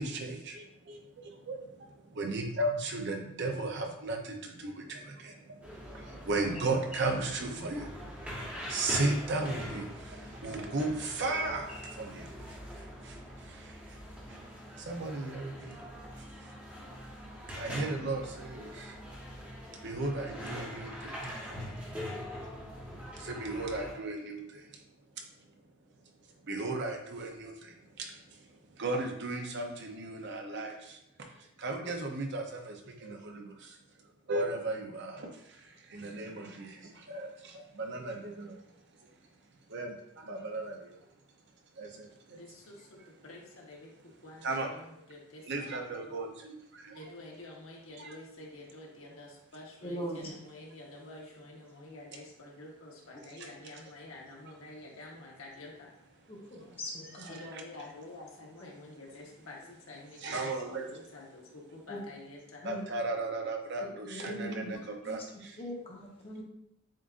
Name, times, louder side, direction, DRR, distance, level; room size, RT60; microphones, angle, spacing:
voice 1, 0.0-14.0 14.3-14.4 14.7-15.8 16.2-16.6 16.9-17.1 17.5-19.0 19.7-21.7 23.1-24.8 25.2-25.3 26.4-33.8 34.3-38.6 39.0-39.1 39.7-41.1 41.7-42.4 44.4-44.7 45.4-47.1 47.9-48.1 53.4-53.5 56.5-56.6 57.1-57.6 60.2-60.9 62.6-65.6, right 2 dB, 55° right, 3 dB, 0.6 m, -36 dB
sound 1, 5.6-23.9, equal, 5° right, 1.1 m, -43 dB
voice 2, 42.3-43.9 44.2-45.8 46.1-46.2 46.9-55.9 57.3-62.6, left 2 dB, 75° left, -2 dB, 1.1 m, -49 dB
voice 3, 49.8-50.3 56.3-57.4 61.9-62.0 62.6-62.8 64.1-64.8 65.0-65.2 65.6-66.4, equal, 25° left, -2 dB, 0.9 m, -40 dB
7.4 x 2.5 x 2.5 m, 0.81 s
head